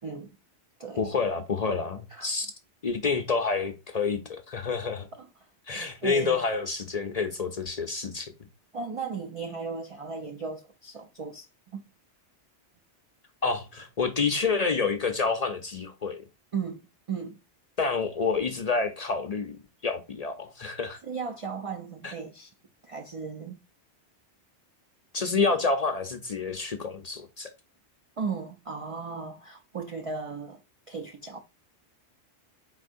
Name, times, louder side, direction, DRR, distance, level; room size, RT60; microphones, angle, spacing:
voice 1, 0.0-0.4 0.8-1.1 2.1-2.3 5.1-5.5 5.7-6.4 8.7-11.9 16.5-16.8 17.1-17.4 21.0-22.5 22.8-23.6 28.2-30.6 30.9-31.4, right 5 dB, 65° right, 0.3 m, -36 dB
voice 2, 1.0-2.5 2.8-5.1 5.7-8.3 13.4-16.2 17.8-19.6 19.8-21.0 22.0-22.1 25.1-27.5, left 4 dB, 45° left, 0.5 m, -28 dB
4.3 x 4.1 x 2.4 m
omnidirectional pair, 1.2 m